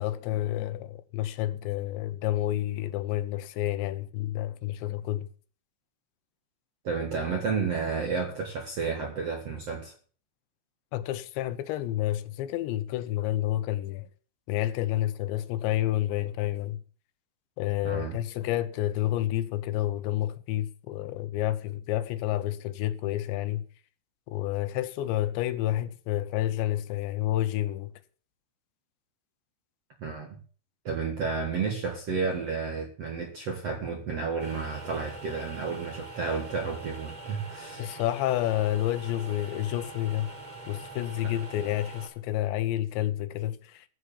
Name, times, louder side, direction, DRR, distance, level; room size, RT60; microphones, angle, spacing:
voice 1, 0.0-5.3 10.9-14.1 14.5-16.8 17.6-23.6 24.3-27.9 37.8-40.3 40.7-43.9, left 13 dB, 80° left, 3.0 m, -29 dB
voice 2, 6.8-9.9 17.8-18.2 30.0-30.4 30.8-37.9 41.2-41.3, right 5 dB, 55° right, 1.8 m, -31 dB
sound 1, 34.4-42.1, right 3 dB, 10° right, 2.6 m, -44 dB
14.5 x 7.1 x 8.4 m
omnidirectional pair, 5.3 m